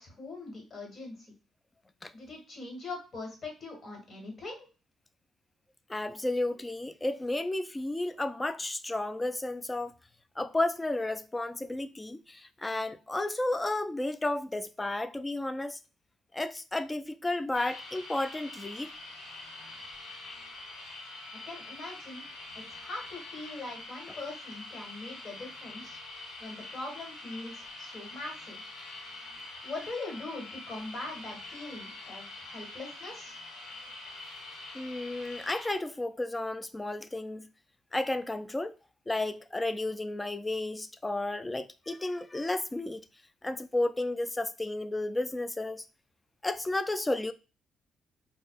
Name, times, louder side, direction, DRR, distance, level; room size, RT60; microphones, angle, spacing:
voice 1, 0.0-1.3 2.1-4.7 21.4-22.2 22.5-26.0 26.4-28.6 29.6-33.4, left 2 dB, 45° left, 1.7 m, -42 dB
voice 2, 5.9-9.9 10.4-15.8 16.3-19.0 34.7-37.5 37.9-38.7 39.1-43.0 43.4-45.9 46.4-47.3, left 2 dB, 15° left, 0.3 m, -32 dB
sound 1, 17.5-35.8, left 2 dB, 90° left, 1.4 m, -45 dB
4.2 x 2.6 x 2.4 m
cardioid pair, 90°, 0 cm